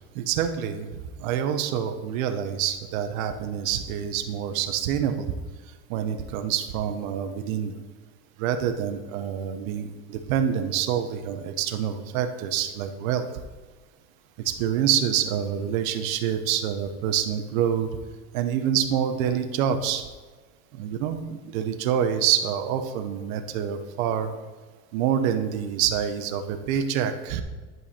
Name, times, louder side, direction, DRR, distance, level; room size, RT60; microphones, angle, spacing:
voice 1, 0.1-5.3 5.9-7.7 8.4-13.2 14.4-17.9 18.3-20.0 20.8-24.3 24.9-27.4, right 9 dB, 75° right, 7 dB, 1.0 m, -26 dB
9.2 x 5.5 x 4.3 m, 1.3 s
supercardioid pair, 140°, 42 cm